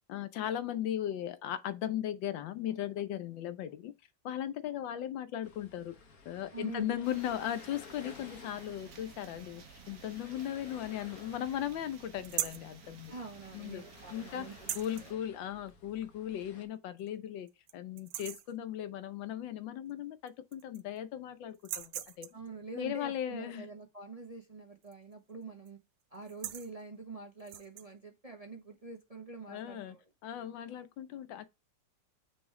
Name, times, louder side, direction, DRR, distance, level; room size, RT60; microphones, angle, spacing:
voice 1, 0.1-3.9 4.2-6.0 6.2-13.1 13.5-13.8 14.1-14.5 14.7-17.5 17.7-22.4 22.8-23.7 29.5-30.0 30.2-31.4, left 11 dB, 90° left, 1.5 m, -37 dB
sound 1, 5.4-16.7, left 5 dB, 55° left, 1.7 m, -55 dB
voice 2, 6.5-6.9 13.1-15.2 22.3-25.8 26.1-30.0, right 4 dB, 25° right, 0.8 m, -46 dB
sound 2, 7.0-15.1, right 6 dB, 50° right, 1.3 m, -55 dB
sound 3, 12.2-12.7 14.5-15.1 16.4-16.5 17.0-17.1 17.5-17.7 18.0-18.5 19.9-20.0 20.3-21.0 21.5-22.5 24.8-25.1 25.4-25.7 26.1-26.7 27.4-27.9, right 11 dB, 80° right, 1.4 m, -39 dB
6.1 x 3.4 x 4.8 m
omnidirectional pair, 2.0 m